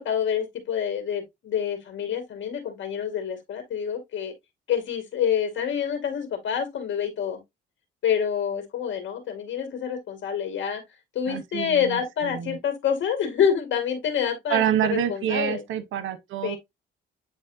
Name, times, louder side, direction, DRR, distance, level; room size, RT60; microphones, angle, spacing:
voice 1, 0.0-4.3 4.7-7.4 8.0-10.8 11.1-14.6 14.9-15.6 16.4-16.6, left 8 dB, 70° left, 2.6 m, -27 dB
voice 2, 11.3-12.6 14.5-16.6, right 10 dB, 80° right, 1.0 m, -27 dB
9.3 x 4.1 x 2.7 m
cardioid pair, 90°, 20 cm